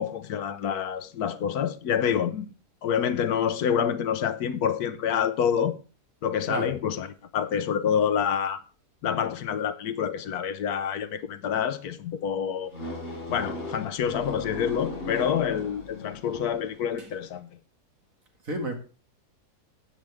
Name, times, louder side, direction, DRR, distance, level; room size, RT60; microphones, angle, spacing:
voice 1, 0.0-2.5 2.8-5.7 6.2-7.1 7.3-8.6 9.0-12.7 13.3-17.5, left 8 dB, 75° left, 1.3 m, -27 dB
voice 2, 6.4-6.7 17.0-17.1 18.4-18.7, right 2 dB, 60° right, 2.5 m, -31 dB
sound 1, 12.7-16.8, left 1 dB, 45° left, 5.8 m, -37 dB
12.5 x 9.0 x 3.5 m
omnidirectional pair, 1.7 m